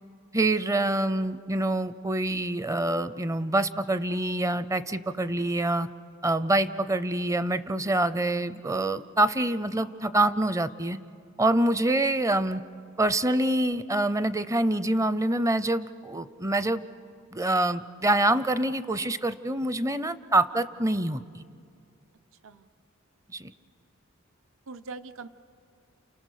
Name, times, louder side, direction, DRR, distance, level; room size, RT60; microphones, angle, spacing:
voice 1, 0.3-5.9 6.2-11.0 11.4-12.6 13.0-16.8 17.3-21.4 23.3-23.5, right 1 dB, 15° right, 14 dB, 0.5 m, -26 dB
voice 2, 24.7-25.3, right 4 dB, 70° right, 11 dB, 0.8 m, -43 dB
29.5 x 29.0 x 6.5 m, 2.4 s
head